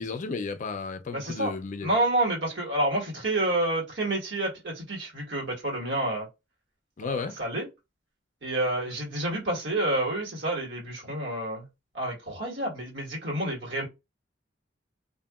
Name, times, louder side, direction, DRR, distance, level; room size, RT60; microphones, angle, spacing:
voice 1, 0.0-1.9 7.0-7.4, left 4 dB, 45° left, 0.4 m, -33 dB
voice 2, 1.1-1.5 1.8-6.3 7.0-7.7 8.4-11.6 11.9-13.8, right 1 dB, 85° right, 1.4 m, -29 dB
2.7 x 2.5 x 2.3 m
head